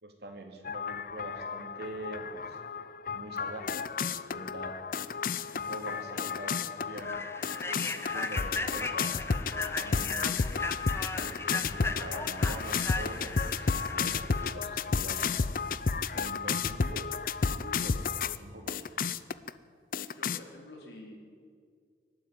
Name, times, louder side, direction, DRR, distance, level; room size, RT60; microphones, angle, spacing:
voice 1, 0.0-2.6 3.1-4.8 5.5-7.2 7.6-9.2 9.4-10.4 11.1-15.3 16.1-17.2 17.5-18.9, right 1 dB, 70° right, 3 dB, 2.9 m, -44 dB
sound 1, 0.6-18.4 18.7-19.5 19.9-20.4, left 5 dB, 50° left, 0.5 m, -32 dB
Human voice / Train, 5.7-5.8 6.2-6.4 6.9-14.5, left 3 dB, 15° left, 0.8 m, -38 dB
voice 2, 20.2-21.2, left 1 dB, 80° left, -1 dB, 4.3 m, -48 dB
22.5 x 12.0 x 9.6 m, 2.1 s
head